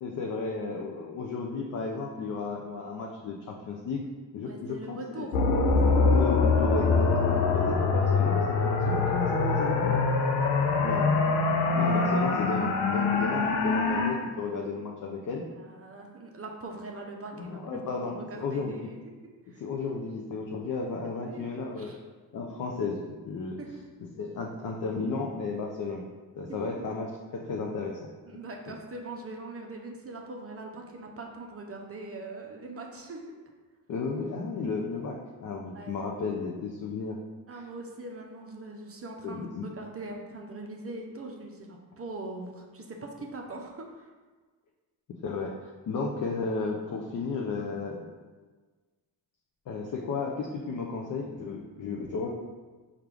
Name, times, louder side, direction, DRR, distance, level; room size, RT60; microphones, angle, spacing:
voice 1, 0.0-4.1 4.3-5.3 6.1-10.0 10.8-11.1 11.7-15.4 17.3-18.9 19.6-21.9 22.3-23.6 24.2-26.0 26.4-28.0 33.9-37.2 37.5-37.6 39.2-39.6 45.2-48.0 49.7-52.3, left 4 dB, 40° left, 0 dB, 0.5 m, -33 dB
voice 2, 4.4-5.4 5.9-6.0 10.9-11.1 11.6-12.0 15.6-17.8 18.1-19.6 21.1-22.0 23.6-23.8 26.4-26.7 28.2-33.2 35.7-36.0 37.5-44.1, right 2 dB, 30° right, 1 dB, 0.6 m, -42 dB
sound 1, 5.3-14.1, left 4 dB, 85° left, 0.6 m, -24 dB
4.5 x 2.4 x 3.4 m, 1.4 s
hypercardioid pair, 45°, 49 cm